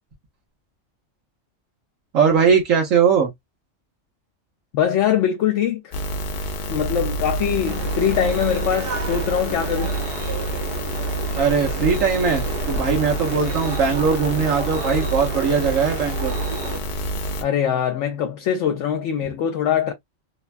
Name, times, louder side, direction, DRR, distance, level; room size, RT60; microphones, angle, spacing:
voice 1, 2.1-3.3 11.3-16.3, right 6 dB, 80° right, 1.4 m, -20 dB
voice 2, 4.7-5.9 6.7-9.9 17.4-19.9, left 9 dB, 70° left, 0.9 m, -22 dB
sound 1, 5.9-17.4, right 1 dB, 55° left, 0.5 m, -27 dB
sound 2, 7.7-16.8, right 4 dB, 55° right, 0.9 m, -33 dB
3.1 x 2.2 x 2.4 m
omnidirectional pair, 1.3 m